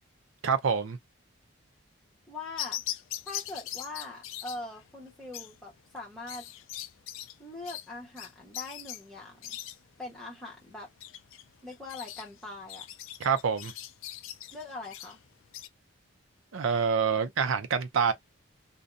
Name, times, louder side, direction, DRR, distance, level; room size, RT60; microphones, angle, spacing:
voice 1, 0.4-1.0 13.2-13.7 16.5-18.1, right 6 dB, 75° right, 0.5 m, -26 dB
voice 2, 2.3-2.8 3.3-6.5 7.4-9.6 10.0-10.9 11.6-12.8 14.5-15.2, left 2 dB, ahead, 1.0 m, -42 dB
sound 1, 2.6-15.7, left 12 dB, 75° left, 0.3 m, -41 dB
2.6 x 2.1 x 2.5 m
head